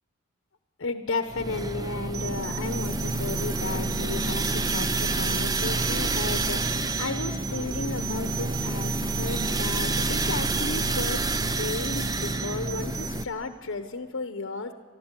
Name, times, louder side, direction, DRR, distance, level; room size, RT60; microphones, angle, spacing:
voice 1, 0.8-14.7, left 3 dB, 60° left, 7 dB, 0.9 m, -34 dB
sound 1, 1.3-13.2, right 2 dB, 15° right, 0.5 m, -28 dB
sound 2, 2.1-13.2, right 6 dB, 85° right, 3.4 m, -37 dB
29.5 x 13.0 x 8.3 m, 2.3 s
head